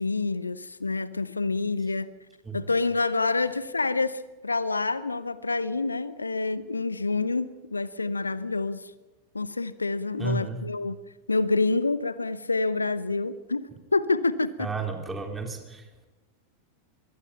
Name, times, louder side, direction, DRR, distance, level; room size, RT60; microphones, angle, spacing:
voice 1, 0.0-2.1 2.5-8.9 9.3-11.0 11.3-14.7, left 3 dB, 80° left, 0.7 m, -27 dB
voice 2, 10.2-10.6 14.6-16.0, right 4 dB, 15° right, 3.6 m, -32 dB
24.0 x 21.0 x 5.8 m
figure-of-eight pair, 90°, 0 cm